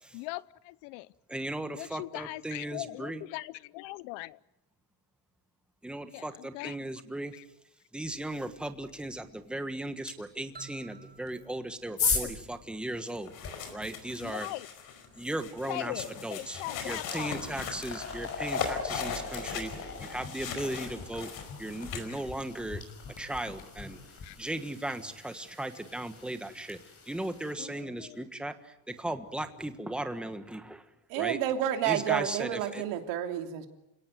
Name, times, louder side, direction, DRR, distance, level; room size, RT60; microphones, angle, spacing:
voice 1, 0.1-1.1 1.8-4.4 6.1-6.8 7.3-7.4 12.0-12.4 14.2-14.7 15.7-17.4 24.2-24.4 27.6-28.3, left 21 dB, 75° left, 20 dB, 0.9 m, -40 dB
voice 2, 1.3-3.2 5.8-7.3 7.9-13.3 13.7-14.5 15.2-21.3 21.6-22.8 23.2-24.0 24.4-26.8 27.0-30.8 31.1-31.4 31.8-32.8, right 1 dB, ahead, 8 dB, 1.4 m, -37 dB
sound 1, 10.1-10.2 11.2-13.6 15.9-16.1 16.5-27.5, left 5 dB, 35° left, 6.2 m, -38 dB
sound 2, 10.5-13.2, right 3 dB, 20° right, 6.9 m, -53 dB
sound 3, 13.1-22.2, left 7 dB, 55° left, 5.1 m, -40 dB
voice 3, 31.1-33.7, right 11 dB, 85° right, 5 dB, 3.2 m, -30 dB
29.0 x 17.5 x 9.4 m, 0.90 s
cardioid pair, 150°, 42 cm